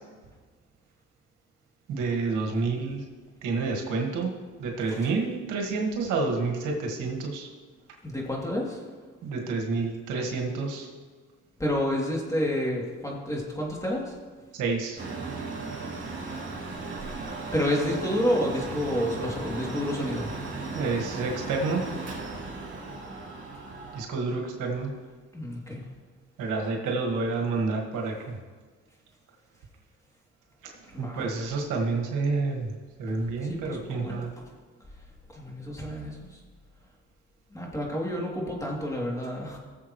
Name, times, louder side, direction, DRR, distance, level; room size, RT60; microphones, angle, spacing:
voice 1, 1.9-3.0 3.4-4.3 4.6-7.5 9.2-10.9 14.5-15.0 20.7-21.8 23.9-24.9 26.4-28.4 30.6-30.7 31.0-32.7 33.0-34.3, right 3 dB, 90° right, 1 dB, 1.9 m, -29 dB
voice 2, 8.0-8.9 11.6-14.2 17.5-20.3 25.3-25.9 30.9-31.2 33.2-34.2 35.3-36.4 37.5-39.6, left 1 dB, 10° left, -3 dB, 2.9 m, -30 dB
Mechanical fan, 15.0-24.0, right 3 dB, 40° right, 3.0 m, -36 dB
18.5 x 7.4 x 3.2 m, 1.5 s
cardioid pair, 90°, 30 cm